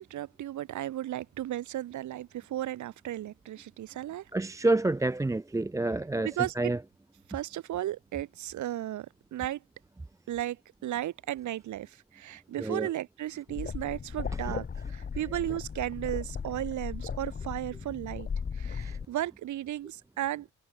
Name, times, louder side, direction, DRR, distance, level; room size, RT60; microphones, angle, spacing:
voice 1, 0.0-4.3 6.2-6.7 7.3-9.1 9.3-9.6 10.3-18.3 18.5-20.5, right 13 dB, 75° right, 1.8 m, -35 dB
voice 2, 4.3-6.3 6.6-6.8 12.6-12.9, right 2 dB, 10° right, 0.6 m, -28 dB
sound 1, 13.5-19.1, left 6 dB, 35° left, 1.6 m, -37 dB
cardioid pair, 90°, 30 cm